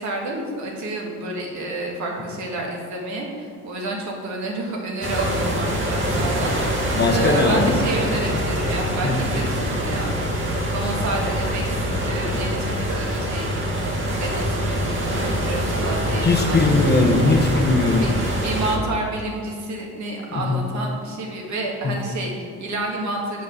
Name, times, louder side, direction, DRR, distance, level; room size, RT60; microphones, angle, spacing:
voice 1, 0.0-10.1 10.7-13.6 14.2-14.9 15.4-16.7 18.0-18.1 18.4-23.4, right 2 dB, 70° right, -1 dB, 1.8 m, -29 dB
sound 1, 5.0-18.8, equal, 40° right, 1.9 m, -24 dB
voice 2, 6.9-7.8 9.0-9.2 16.2-18.1 20.3-20.6 21.8-21.9, left 3 dB, 35° left, 3 dB, 1.0 m, -19 dB
8.1 x 4.7 x 6.3 m, 2.2 s
cardioid pair, 90°, 30 cm